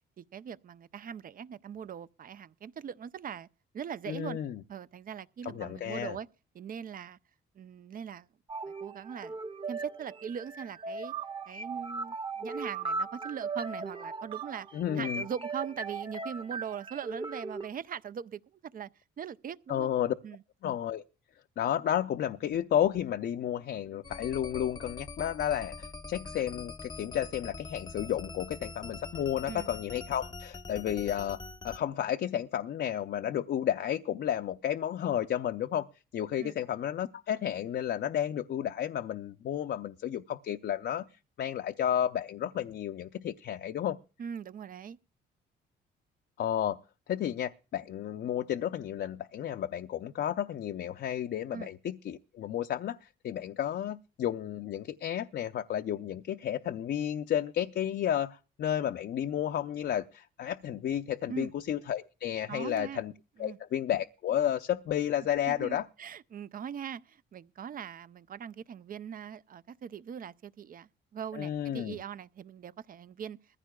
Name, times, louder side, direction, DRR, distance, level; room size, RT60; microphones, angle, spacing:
voice 1, 0.2-3.5 3.7-4.4 4.7-6.3 6.5-7.2 7.6-8.3 8.7-9.4 9.7-11.1 11.5-14.7 15.0-18.9 19.2-19.9 20.2-20.4 29.5-29.7 36.4-36.5 44.2-45.0 51.5-51.7 61.3-61.5 62.5-63.0 63.4-63.6 65.5-73.4, right 8 dB, 45° right, 0.5 m, -41 dB
voice 2, 4.1-4.6 5.4-6.2 14.7-15.2 19.7-20.1 20.6-21.0 21.6-35.9 36.1-41.1 41.4-44.0 46.4-46.8 47.1-63.1 63.4-65.8 71.3-72.0, left 10 dB, 60° left, 0.6 m, -32 dB
sound 1, 8.5-17.7, right 4 dB, 25° right, 1.1 m, -38 dB
sound 2, 24.0-31.8, left 3 dB, 20° left, 0.8 m, -44 dB
21.0 x 15.0 x 2.3 m
cardioid pair, 90°, 20 cm